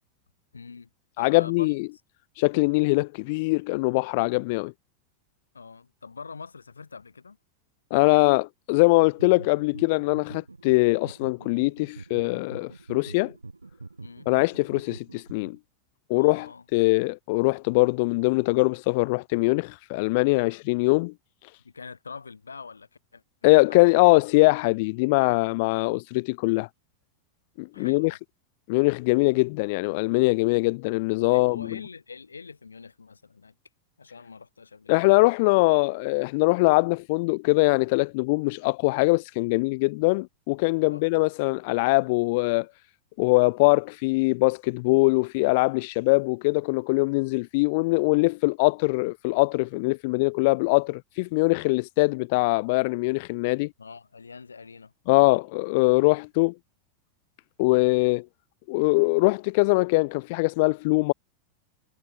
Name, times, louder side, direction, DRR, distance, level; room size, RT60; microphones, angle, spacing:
voice 1, 0.5-0.9 1.2-1.8 5.5-7.4 14.0-14.3 16.1-16.6 21.6-24.2 27.7-28.2 31.2-33.5 34.0-35.3 40.8-41.0 53.8-54.9 55.2-55.4, left 5 dB, 75° left, 7.8 m, -44 dB
voice 2, 1.2-1.9 2.4-4.7 7.9-13.3 14.3-15.6 16.1-21.1 21.4-21.5 23.4-26.7 27.6-28.2 28.7-31.7 34.9-42.7 43.2-53.7 55.1-56.5 57.6-58.2 58.7-61.1, left 26 dB, 50° left, 1.2 m, -22 dB
sound 1, 9.0-15.6, right 3 dB, 80° right, 3.8 m, -45 dB
figure-of-eight pair, 90°, 0 cm